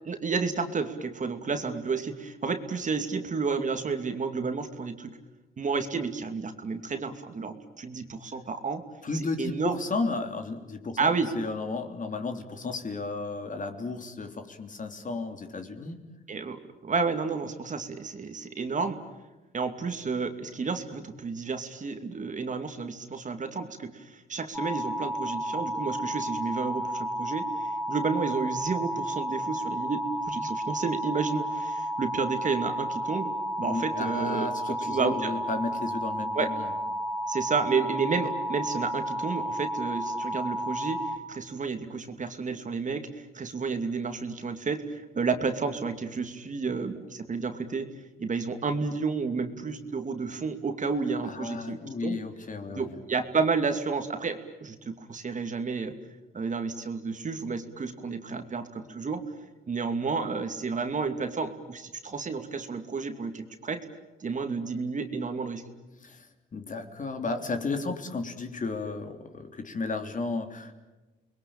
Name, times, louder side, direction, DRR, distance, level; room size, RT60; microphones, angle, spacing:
voice 1, 0.0-5.2 5.6-8.8 9.4-9.8 11.0-11.3 16.3-16.6 16.8-19.0 19.5-35.3 36.3-36.5 37.3-47.9 48.2-52.2 52.7-55.9 56.3-59.2 59.7-63.8 64.2-65.7, right 4 dB, 40° right, 7 dB, 2.6 m, -31 dB
voice 2, 9.0-16.0 33.6-36.7 51.3-53.0 66.0-70.7, left 3 dB, 40° left, 6 dB, 3.3 m, -33 dB
sound 1, 24.5-41.2, equal, 5° left, 5.3 m, -32 dB
30.0 x 21.5 x 8.9 m, 1.1 s
cardioid pair, 90°, 20 cm